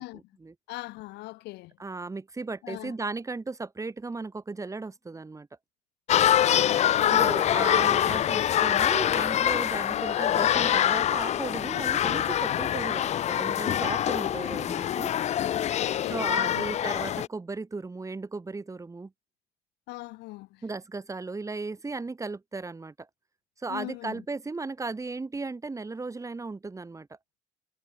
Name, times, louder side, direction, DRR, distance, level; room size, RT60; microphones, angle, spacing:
voice 1, 0.0-0.5 1.8-5.5 7.1-15.1 16.1-19.1 20.6-22.9 23.6-27.1, right 3 dB, 20° right, 2.3 m, -36 dB
voice 2, 0.7-1.7 2.6-2.9 6.3-7.3 9.9-10.1 15.7-16.7 19.9-20.6 23.7-24.2, left 20 dB, 85° left, 0.8 m, -40 dB
sound 1, 6.1-17.3, left 11 dB, 40° left, 0.4 m, -25 dB
cardioid pair, 110°, 17 cm